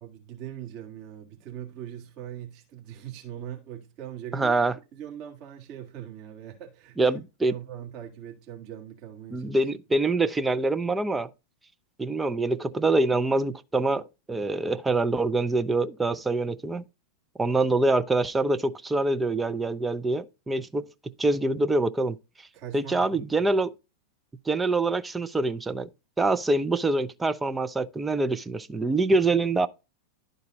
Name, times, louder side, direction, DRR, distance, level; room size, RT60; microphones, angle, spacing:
voice 1, 0.0-4.5 4.9-9.5 22.5-23.5, right 10 dB, 40° right, 1.7 m, -41 dB
voice 2, 4.3-4.7 7.0-7.5 9.3-11.3 12.0-16.8 17.4-20.9 21.2-22.2 22.7-23.7 24.5-25.9 26.2-29.7, right 2 dB, 10° right, 0.5 m, -25 dB
11.5 x 3.9 x 3.8 m
figure-of-eight pair, 90°, 0 cm